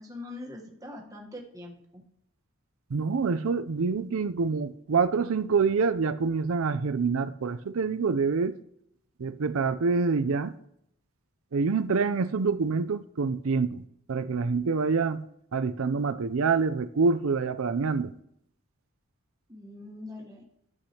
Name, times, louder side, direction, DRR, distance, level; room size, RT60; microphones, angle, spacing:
voice 1, 0.0-2.0 19.5-20.4, left 2 dB, 15° right, 1.2 m, -43 dB
voice 2, 2.9-8.5 9.2-10.5 11.5-13.8 14.1-15.2 15.5-18.1, right 4 dB, 65° right, 0.5 m, -26 dB
13.0 x 8.0 x 2.9 m
head